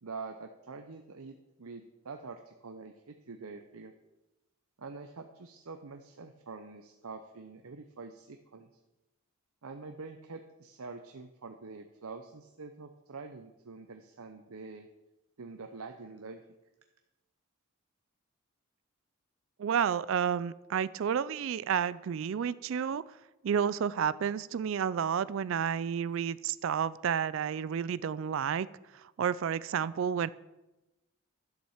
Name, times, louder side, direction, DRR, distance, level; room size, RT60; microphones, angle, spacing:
voice 1, 0.0-3.9 4.8-8.7 9.6-14.9 15.4-16.4, right 4 dB, 80° right, 6 dB, 0.7 m, -46 dB
voice 2, 19.6-23.0 23.4-28.7 29.2-30.3, right 8 dB, 60° right, 19 dB, 0.3 m, -30 dB
11.5 x 7.3 x 7.1 m, 1.0 s
head